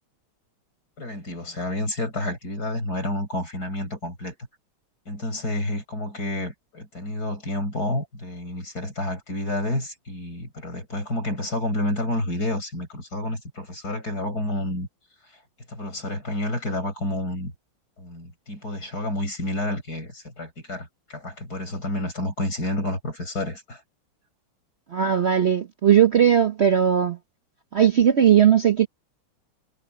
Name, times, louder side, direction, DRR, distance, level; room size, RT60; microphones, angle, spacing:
voice 1, 1.0-4.3 5.1-14.9 15.7-17.5 18.0-23.8, left 1 dB, 45° left, 8.0 m, -29 dB
voice 2, 24.9-27.2 27.7-28.9, right 9 dB, 85° right, 0.5 m, -18 dB
omnidirectional pair, 2.3 m